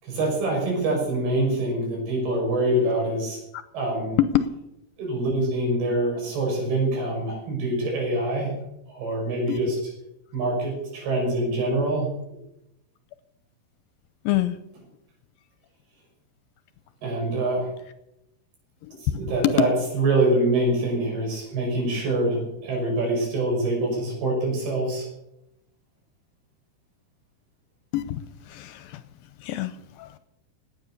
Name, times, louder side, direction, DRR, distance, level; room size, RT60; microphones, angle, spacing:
voice 1, 0.0-3.4 3.7-4.2 5.0-8.5 8.9-9.8 10.3-12.4 17.0-17.7 19.0-25.1, right 2 dB, 80° right, 0 dB, 8.3 m, -25 dB
voice 2, 14.2-14.6 18.8-18.9 19.4-19.5 27.9-29.0 29.4-30.2, left 13 dB, 75° left, 12 dB, 2.4 m, -26 dB
18.5 x 10.0 x 6.7 m, 0.83 s
omnidirectional pair, 4.5 m